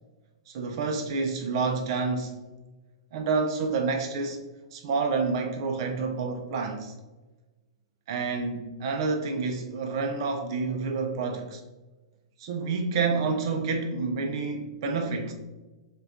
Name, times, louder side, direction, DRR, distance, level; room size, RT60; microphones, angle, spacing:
voice 1, 0.5-2.4 3.1-4.4 4.7-6.9 8.1-11.6 12.4-15.3, right 4 dB, 55° right, 4 dB, 0.4 m, -28 dB
5.7 x 2.3 x 2.5 m, 1.2 s
hypercardioid pair, 135°, 3 cm